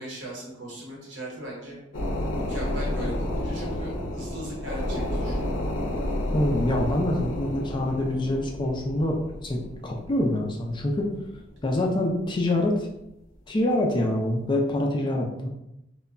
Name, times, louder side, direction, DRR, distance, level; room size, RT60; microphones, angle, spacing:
voice 1, 0.0-1.8 2.5-5.5, right 1 dB, 70° right, -4 dB, 1.0 m, -38 dB
sound 1, 1.9-11.9 12.3-12.4, left 1 dB, 80° left, 0.5 m, -31 dB
voice 2, 6.3-11.1 11.6-12.9 13.5-15.5, left 1 dB, 25° left, 1 dB, 0.3 m, -25 dB
2.2 x 2.1 x 3.6 m, 0.84 s
head